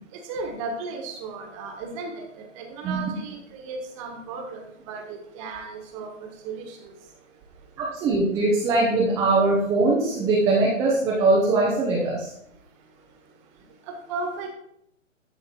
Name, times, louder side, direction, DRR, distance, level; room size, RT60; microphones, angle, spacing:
voice 1, 0.1-7.7 12.9-14.5, right 3 dB, 25° right, 3 dB, 1.4 m, -36 dB
voice 2, 7.8-12.3, right 2 dB, 10° right, -5 dB, 0.7 m, -21 dB
11.5 x 3.9 x 4.3 m, 0.75 s
hypercardioid pair, 145°, 39 cm